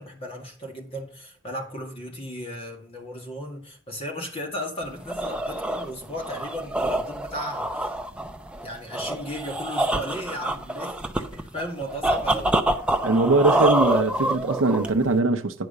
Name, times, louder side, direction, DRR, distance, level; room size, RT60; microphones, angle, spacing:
voice 1, 0.0-7.9 8.6-12.5, equal, 30° left, 1.9 m, -35 dB
sound 1, 4.8-15.2, right 1 dB, 5° right, 0.6 m, -26 dB
voice 2, 13.0-15.7, right 3 dB, 85° right, 0.7 m, -21 dB
10.0 x 4.8 x 6.6 m
head